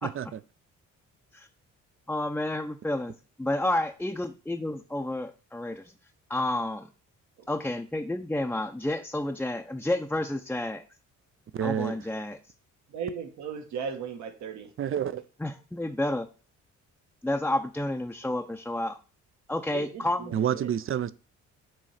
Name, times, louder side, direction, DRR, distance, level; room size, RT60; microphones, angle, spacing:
voice 1, 0.0-0.4 11.5-12.0 14.8-15.2 20.3-21.1, right 9 dB, 45° right, 0.5 m, -28 dB
voice 2, 2.1-3.1 3.4-5.9 6.3-6.9 7.5-10.8 11.6-12.4 15.4-16.3 17.2-19.0 19.5-20.4, left 1 dB, 5° left, 0.6 m, -30 dB
voice 3, 12.9-14.7 19.7-20.7, right 6 dB, 70° right, 1.3 m, -37 dB
7.6 x 3.1 x 5.7 m
cardioid pair, 90°, 30 cm